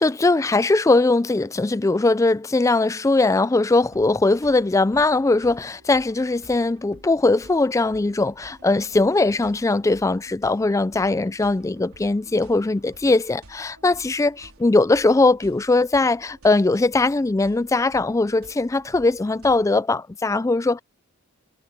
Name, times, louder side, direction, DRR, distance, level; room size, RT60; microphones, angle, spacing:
voice 1, 0.0-20.8, left 2 dB, 15° left, 0.3 m, -20 dB
sound 1, 3.7-19.7, right 1 dB, 80° right, 4.3 m, -51 dB
head